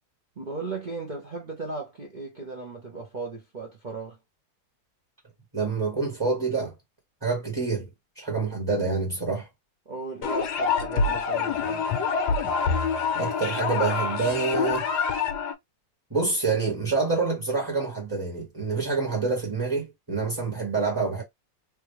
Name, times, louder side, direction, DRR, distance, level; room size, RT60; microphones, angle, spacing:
voice 1, 0.4-4.2 9.9-12.1, right 3 dB, 40° right, 0.6 m, -36 dB
voice 2, 5.5-6.7 7.2-7.9 8.2-9.5 13.1-14.8 16.1-21.2, right 4 dB, 15° right, 1.1 m, -27 dB
sound 1, 10.2-15.5, left 5 dB, 70° left, 1.2 m, -26 dB
3.4 x 2.5 x 3.1 m
omnidirectional pair, 2.0 m